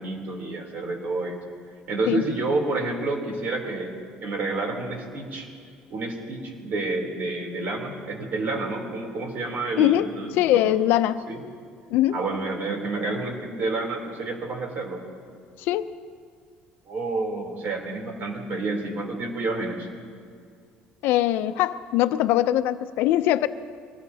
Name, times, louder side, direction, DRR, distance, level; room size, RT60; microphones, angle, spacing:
voice 1, 0.0-1.4 1.9-3.9 4.2-5.5 5.9-10.6 11.3-11.4 12.1-15.0 16.9-19.9, right 3 dB, 60° right, 1 dB, 3.4 m, -29 dB
voice 2, 9.8-11.2 11.9-12.2 15.6-15.9 21.0-23.5, left 13 dB, 80° left, 12 dB, 0.6 m, -22 dB
24.0 x 18.5 x 2.8 m, 2.1 s
cardioid pair, 115°, 3 cm